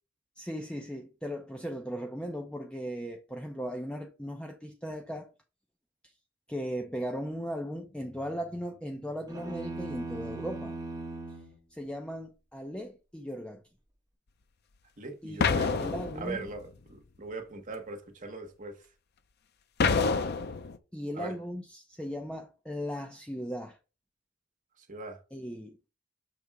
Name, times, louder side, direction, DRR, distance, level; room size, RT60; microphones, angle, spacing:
voice 1, 0.4-5.3 6.5-10.8 11.7-13.6 15.2-16.5 20.9-23.8 25.3-25.8, equal, 5° left, 0.7 m, -37 dB
sound 1, 9.3-11.5, right 2 dB, 15° right, 1.7 m, -38 dB
voice 2, 15.0-18.8 21.1-21.3 24.8-25.2, right 3 dB, 40° right, 1.3 m, -41 dB
sound 2, 15.4-16.6 19.8-20.8, left 4 dB, 55° left, 0.6 m, -27 dB
6.7 x 3.5 x 4.7 m
head